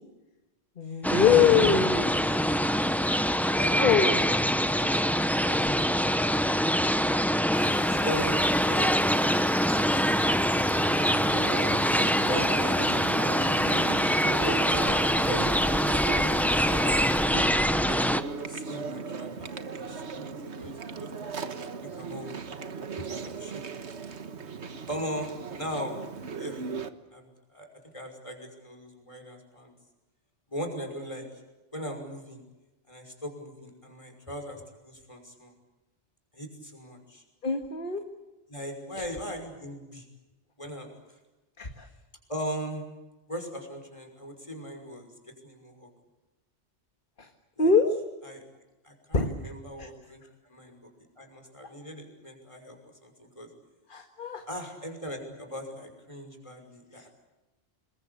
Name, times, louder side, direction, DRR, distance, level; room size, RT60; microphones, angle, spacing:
voice 1, 0.8-2.1 3.7-4.2 37.4-38.0 41.6-41.9 47.2-47.3 47.6-47.9 49.1-49.3 49.8-49.9 53.9-54.5 56.9-57.1, left 6 dB, 45° left, 4 dB, 1.9 m, -23 dB
sound 1, 1.0-18.2, equal, ahead, 0.8 m, -24 dB
voice 2, 2.2-2.5 3.5-5.0 5.4-6.9 7.8-10.3 11.9-13.6 14.3-17.9 18.4-21.1 21.8-22.4 22.6-23.8 24.9-26.0 26.4-26.6 27.1-27.7 27.9-29.7 30.5-31.3 31.7-32.4 32.9-35.5 36.3-37.2 38.5-40.0 40.6-40.9 42.3-42.8 43.3-45.1 45.4-45.9 47.6-47.7 48.3-48.4 48.8-50.2 50.5-50.9 51.2-52.8 53.0-53.5 54.5-57.1, equal, 25° left, 3 dB, 5.8 m, -39 dB
sound 2, 7.5-17.3, right 4 dB, 30° right, 0.9 m, -42 dB
Chewing mastication, 10.8-26.9, right 5 dB, 70° right, 1.6 m, -37 dB
27.5 x 21.5 x 8.5 m, 1.1 s
omnidirectional pair, 1.2 m